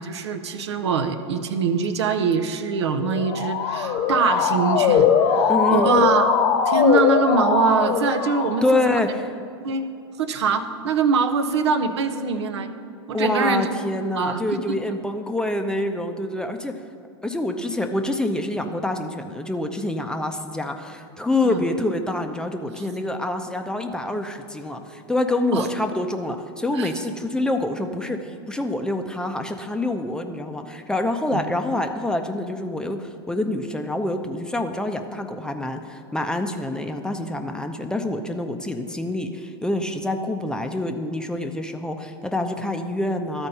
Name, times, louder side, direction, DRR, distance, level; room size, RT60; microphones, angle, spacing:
voice 1, 0.0-6.3 6.7-9.0 9.6-9.9 10.2-12.7 13.1-13.7 14.2-14.4 21.4-21.6 25.5-25.7 26.7-26.9 31.3-31.4, right 5 dB, 75° right, 9 dB, 0.7 m, -23 dB
Motor vehicle (road) / Siren, 3.0-8.9, left 7 dB, 50° left, 1.0 m, -21 dB
voice 2, 5.5-5.9 8.6-9.2 13.1-16.7 17.2-43.5, left 1 dB, 5° left, 5 dB, 0.6 m, -26 dB
13.0 x 4.4 x 5.4 m, 2.4 s
hypercardioid pair, 100°, 14 cm